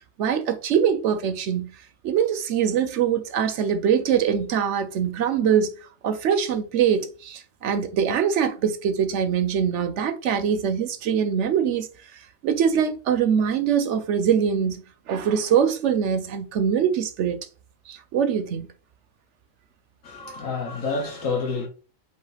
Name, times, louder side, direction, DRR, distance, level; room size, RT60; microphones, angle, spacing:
voice 1, 0.2-1.7 2.0-5.7 6.0-11.9 12.4-14.8 15.1-17.4 17.9-18.7, right 8 dB, 65° right, 0.9 m, -23 dB
voice 2, 20.0-21.7, left 4 dB, 70° left, 1.5 m, -28 dB
5.2 x 2.5 x 4.1 m
omnidirectional pair, 1.5 m